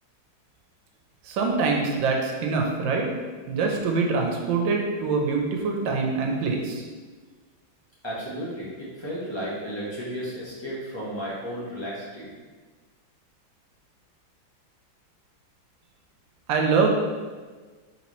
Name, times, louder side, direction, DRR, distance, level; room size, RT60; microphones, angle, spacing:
voice 1, 1.2-3.1 3.5-6.9 16.5-16.9, right 4 dB, 75° right, 1 dB, 1.3 m, -24 dB
voice 2, 8.0-12.3, equal, 25° left, -8 dB, 0.5 m, -33 dB
4.0 x 3.5 x 3.0 m, 1.4 s
omnidirectional pair, 2.1 m